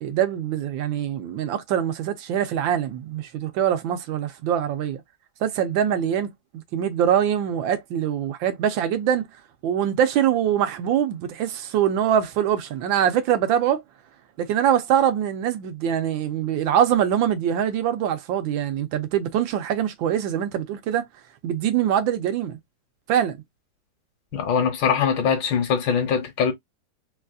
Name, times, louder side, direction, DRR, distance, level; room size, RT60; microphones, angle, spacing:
voice 1, 0.0-5.0 5.4-9.3 9.6-13.8 14.4-21.1 21.4-22.6 23.1-23.4, right 9 dB, 90° right, 1.5 m, -23 dB
voice 2, 24.3-26.5, left 7 dB, 75° left, 1.8 m, -22 dB
4.1 x 2.3 x 2.6 m
omnidirectional pair, 2.1 m